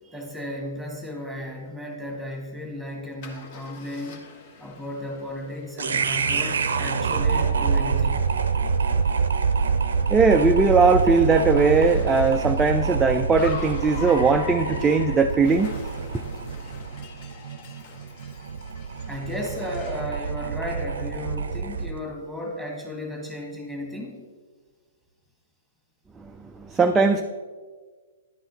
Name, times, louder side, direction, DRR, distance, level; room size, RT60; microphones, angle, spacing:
voice 1, 0.1-4.2 4.6-8.2 19.1-24.2, left 1 dB, 5° left, 1 dB, 1.7 m, -34 dB
Car, 3.2-20.1, left 4 dB, 40° left, 1.1 m, -43 dB
sound 1, 5.8-22.0, right 5 dB, 65° right, 0.6 m, -26 dB
voice 2, 10.1-15.7 26.7-27.2, right 4 dB, 10° right, 5 dB, 0.3 m, -19 dB
10.5 x 5.6 x 4.1 m, 1.5 s
figure-of-eight pair, 120°, 0 cm